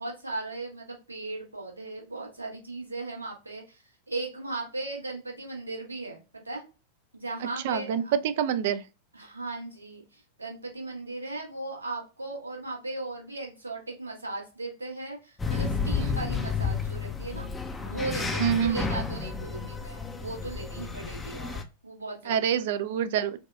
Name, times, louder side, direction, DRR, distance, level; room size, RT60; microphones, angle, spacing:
voice 1, 0.0-6.6 7.1-8.1 9.1-17.5 17.8-22.5, right 2 dB, 80° right, 1.2 m, -37 dB
voice 2, 7.6-8.8 18.4-18.9 22.3-23.4, right 9 dB, 55° right, 0.3 m, -26 dB
sound 1, 15.4-21.6, left 5 dB, 15° left, 0.5 m, -31 dB
4.0 x 2.3 x 2.3 m
figure-of-eight pair, 90°, 0 cm